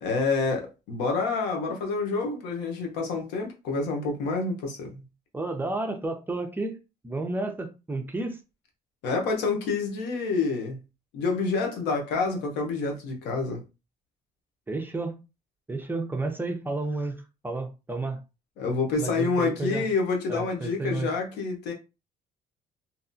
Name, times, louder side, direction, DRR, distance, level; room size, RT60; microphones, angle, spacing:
voice 1, 0.0-5.0 9.0-10.8 11.1-13.6 18.6-21.7, left 4 dB, 90° left, 0.9 m, -28 dB
voice 2, 5.3-6.8 7.0-8.4 14.7-15.2 15.7-18.2 19.0-19.9 20.3-21.1, right 2 dB, 10° right, 0.5 m, -31 dB
2.8 x 2.2 x 2.6 m
cardioid pair, 110°, 17 cm